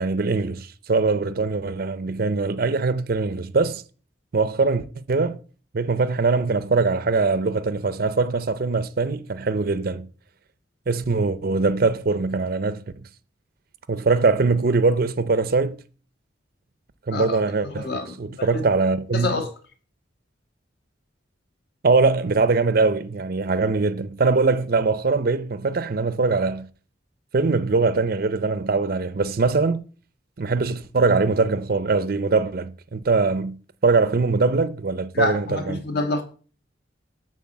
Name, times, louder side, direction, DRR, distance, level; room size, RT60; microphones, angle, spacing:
voice 1, 0.0-3.8 4.3-5.4 5.7-10.1 10.9-13.0 13.9-15.8 17.1-17.9 18.2-19.4 21.8-26.7 27.3-29.8 30.4-33.6 33.8-35.8, right 3 dB, 50° right, 0.5 m, -22 dB
voice 2, 17.1-18.6 19.1-19.5 35.1-36.2, left 2 dB, 60° left, 1.6 m, -28 dB
8.6 x 4.1 x 7.2 m
head